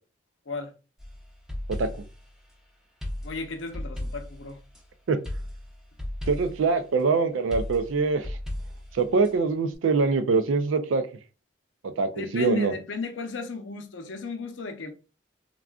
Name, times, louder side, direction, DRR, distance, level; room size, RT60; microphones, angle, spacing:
sound 1, 1.0-2.2 3.0-4.8 5.2-6.7 7.5-9.3, left 1 dB, 5° right, 0.6 m, -35 dB
voice 1, 1.7-2.0 5.1-5.2 6.3-8.4 8.9-11.0 12.0-12.7, right 4 dB, 90° right, 0.4 m, -24 dB
voice 2, 3.2-4.6 12.2-14.9, left 4 dB, 80° left, 0.7 m, -34 dB
3.6 x 2.3 x 2.3 m
head